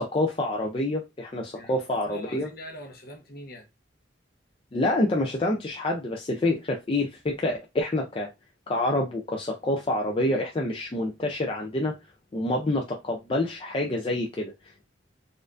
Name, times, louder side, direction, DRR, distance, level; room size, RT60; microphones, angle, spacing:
voice 1, 0.0-2.5 4.7-8.3 8.7-12.0 12.3-14.9, left 1 dB, 30° left, 0.4 m, -27 dB
voice 2, 1.5-3.7, left 1 dB, 55° left, 0.9 m, -43 dB
4.2 x 2.5 x 2.4 m
head